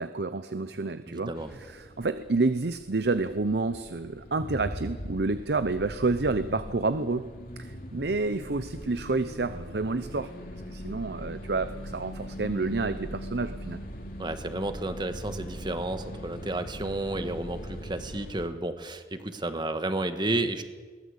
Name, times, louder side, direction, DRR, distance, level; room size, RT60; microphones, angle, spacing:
voice 1, 0.0-10.3 10.7-13.8, right 3 dB, 65° right, 12 dB, 0.8 m, -29 dB
voice 2, 1.1-1.5 14.2-20.7, right 2 dB, 25° right, 9 dB, 1.5 m, -32 dB
sound 1, 1.4-18.5, equal, 50° left, 2.8 m, -41 dB
22.5 x 18.5 x 8.3 m, 1.5 s
head